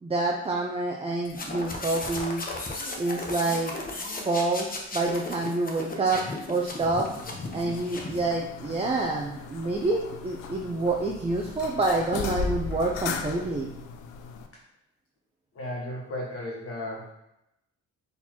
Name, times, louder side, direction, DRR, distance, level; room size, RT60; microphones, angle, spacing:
voice 1, 0.0-2.5 3.0-3.7 4.1-4.7 4.9-6.2 6.5-7.1 7.5-13.7, right 2 dB, 20° right, -1 dB, 0.5 m, -27 dB
sound 1, 1.2-8.3, left 2 dB, 30° left, 0.9 m, -36 dB
sound 2, 6.8-14.5, left 5 dB, 80° left, 0.5 m, -37 dB
voice 2, 15.5-17.1, left 1 dB, 50° left, -2 dB, 1.6 m, -35 dB
4.1 x 4.0 x 2.9 m, 0.84 s
cardioid pair, 90°, 30 cm